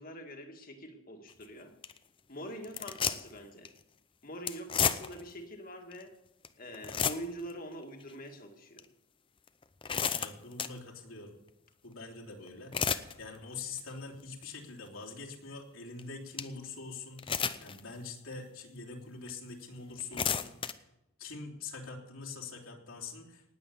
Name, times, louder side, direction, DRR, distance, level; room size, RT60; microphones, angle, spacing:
voice 1, 0.0-1.8 2.3-3.7 4.2-6.1 6.6-8.8, equal, 45° left, 4 dB, 2.0 m, -44 dB
sound 1, 1.3-1.4 1.8-2.0 2.6-3.4 3.6-3.8 4.5-5.3 5.9-6.0 6.4-6.5 6.7-7.5 8.0-8.1 8.8-8.9 9.5-10.8 12.5-13.1 13.6-13.9 14.4-14.5 16.0-16.1 16.4-16.5 17.2-17.8 18.3-18.4 19.3-19.4 19.9-20.7, left 7 dB, 25° left, 0.6 m, -32 dB
voice 2, 10.1-11.3 11.8-12.8 13.2-20.5 21.2-23.4, left 4 dB, 80° left, -2 dB, 3.2 m, -44 dB
19.0 x 8.1 x 6.9 m, 0.88 s
head